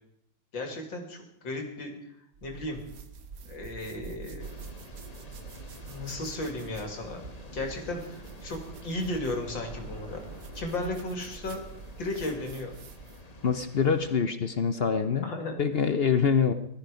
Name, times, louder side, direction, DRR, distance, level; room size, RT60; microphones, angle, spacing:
voice 1, 0.5-1.9 2.4-2.8 3.4-4.5 5.8-7.2 7.5-10.2 10.5-11.6 12.0-12.8 15.2-15.6, left 2 dB, 80° left, 3 dB, 3.3 m, -35 dB
sound 1, 2.3-13.3, right 5 dB, 55° right, 1.4 m, -46 dB
sound 2, 4.4-14.2, left 1 dB, 25° left, 1.2 m, -49 dB
sound 3, 6.7-13.3, right 1 dB, 70° right, 3.2 m, -53 dB
voice 2, 13.4-15.2 15.6-16.5, left 6 dB, 60° left, 10 dB, 0.6 m, -25 dB
18.5 x 13.5 x 5.2 m, 0.76 s
omnidirectional pair, 2.0 m